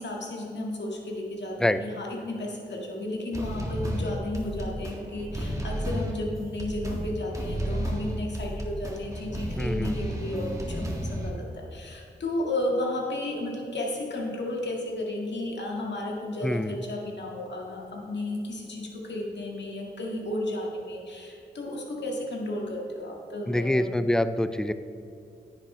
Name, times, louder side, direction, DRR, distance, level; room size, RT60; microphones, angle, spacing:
voice 1, 0.0-23.9, left 1 dB, 65° left, -1 dB, 1.9 m, -33 dB
sound 1, 3.3-11.3, equal, 15° right, 1.7 m, -32 dB
voice 2, 9.6-10.0 16.4-16.8 23.5-24.7, left 1 dB, 5° left, 12 dB, 0.4 m, -25 dB
10.5 x 10.0 x 3.3 m, 2.6 s
cardioid pair, 75°, 19 cm